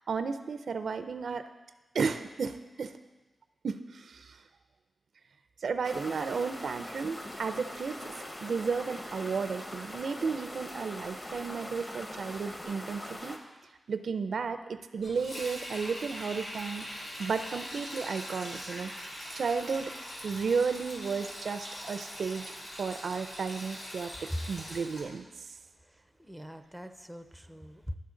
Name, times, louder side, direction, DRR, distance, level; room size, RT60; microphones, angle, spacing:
voice 1, 0.0-1.4 1.9-2.9 3.6-4.4 5.6-13.4 13.9-18.9 19.3-19.9 20.2-22.4 22.8-25.5, right 5 dB, 75° right, 9 dB, 0.4 m, -33 dB
sound 1, 5.8-13.4, left 1 dB, 25° left, 0.9 m, -42 dB
Sink (filling or washing), 15.0-25.0, equal, 75° left, 3.0 m, -42 dB
voice 2, 25.9-27.9, equal, 5° right, 7 dB, 0.5 m, -41 dB
11.5 x 5.5 x 3.8 m, 1.2 s
wide cardioid pair, 115°, 0 cm